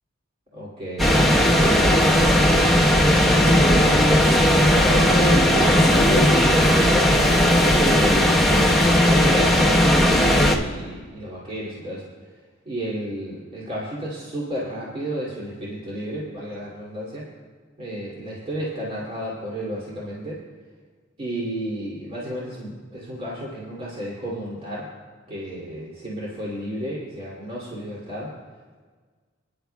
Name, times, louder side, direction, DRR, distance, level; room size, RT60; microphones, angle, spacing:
voice 1, 0.5-2.8 3.6-7.3 7.7-8.5 8.9-12.1 12.6-17.2 17.8-20.4 21.2-24.9 25.3-28.3, equal, 30° right, -6 dB, 2.8 m, -32 dB
sound 1, 1.0-10.6, equal, ahead, 1.1 m, -17 dB
28.5 x 10.5 x 2.3 m, 1.5 s
head